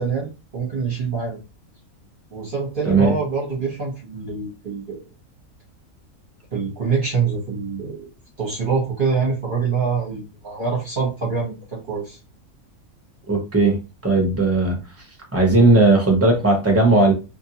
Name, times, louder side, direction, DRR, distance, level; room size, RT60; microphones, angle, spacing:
voice 1, 0.0-1.4 2.3-5.0 6.5-8.1 8.4-12.2, right 5 dB, 45° right, -3 dB, 0.9 m, -25 dB
voice 2, 13.3-13.8 14.0-14.8 15.3-17.1, right 2 dB, 15° right, 1 dB, 0.6 m, -16 dB
2.7 x 2.6 x 2.8 m, 0.29 s
omnidirectional pair, 1.5 m